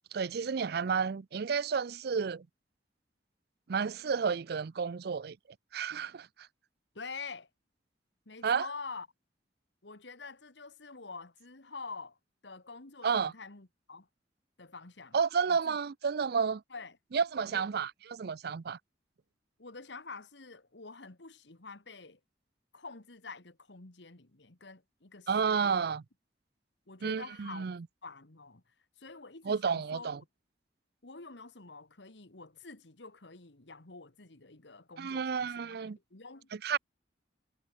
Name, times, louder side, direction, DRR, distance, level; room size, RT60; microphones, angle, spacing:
voice 1, 0.1-2.5 3.7-5.4 5.7-6.3 8.4-8.7 13.0-13.3 15.1-16.6 17.1-18.8 25.3-26.0 27.0-27.8 29.5-30.2 35.0-36.0 36.5-36.8, right 6 dB, 60° right, 0.5 m, -31 dB
voice 2, 7.0-7.5 8.3-9.1 9.8-12.2 12.4-14.1 14.6-15.2 15.5-15.8 16.7-17.0 17.5-17.6 19.6-22.2 22.7-25.3 25.6-25.8 26.9-27.7 28.0-28.6 29.0-30.1 31.0-36.5, left 4 dB, 70° left, 1.9 m, -47 dB
head